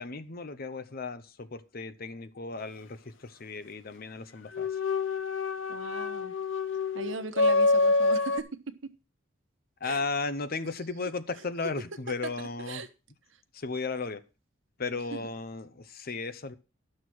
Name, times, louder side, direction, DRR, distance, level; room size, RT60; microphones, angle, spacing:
voice 1, 0.0-4.8 9.8-12.8 13.5-14.2 14.8-16.5, left 3 dB, 50° left, 0.8 m, -35 dB
sound 1, 4.5-8.4, left 3 dB, 75° left, 0.9 m, -26 dB
voice 2, 5.7-6.3 6.9-8.4 8.8-8.9 9.8-10.0 12.6-12.9 15.1-15.2, right 3 dB, 75° right, 1.1 m, -38 dB
11.5 x 6.5 x 6.1 m
head